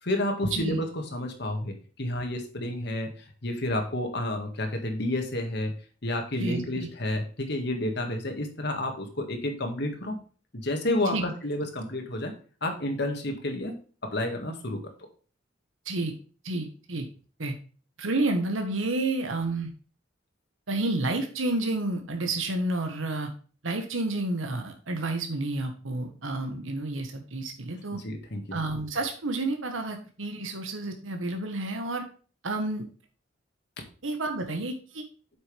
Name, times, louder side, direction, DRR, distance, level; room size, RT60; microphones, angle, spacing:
voice 1, 0.0-3.1 3.4-5.7 6.0-10.2 10.5-12.3 12.6-13.8 14.0-14.8 27.9-28.6, left 1 dB, 55° left, 4 dB, 1.8 m, -30 dB
voice 2, 6.4-6.9 11.1-11.2 15.8-16.1 16.4-17.0 17.4-17.5 18.0-19.7 20.7-23.3 23.6-28.0 28.5-32.0 32.4-32.8 34.0-35.0, right 2 dB, 85° right, 5 dB, 1.4 m, -30 dB
8.2 x 6.2 x 3.3 m, 0.39 s
head